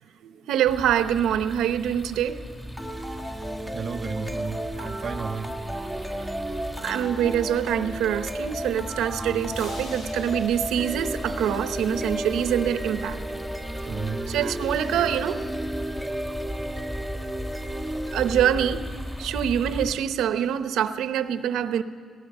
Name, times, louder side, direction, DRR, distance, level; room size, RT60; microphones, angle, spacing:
voice 1, 0.2-2.4 4.8-4.9 6.8-13.2 14.3-15.4 18.1-18.9 19.2-21.8, right 9 dB, 85° right, 11 dB, 0.8 m, -25 dB
sound 1, 0.6-20.0, equal, 15° left, 3.3 m, -37 dB
sound 2, 2.8-18.8, right 1 dB, ahead, 1.3 m, -34 dB
voice 2, 3.6-5.6 13.9-14.2, right 5 dB, 45° right, 5 dB, 0.6 m, -33 dB
sound 3, 9.5-12.2, left 1 dB, 80° left, 6.7 m, -45 dB
18.5 x 18.0 x 8.1 m, 2.1 s
cardioid pair, 90°, 0 cm